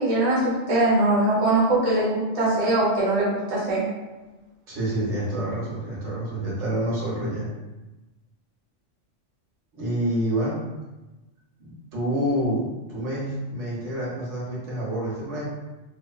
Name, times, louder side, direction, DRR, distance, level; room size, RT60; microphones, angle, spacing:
voice 1, 0.0-3.8, right 2 dB, 35° right, -8 dB, 0.7 m, -22 dB
voice 2, 4.7-7.5 9.7-10.6 11.6-15.5, right 1 dB, 75° right, -6 dB, 1.1 m, -28 dB
2.8 x 2.1 x 2.2 m, 1.1 s
omnidirectional pair, 1.3 m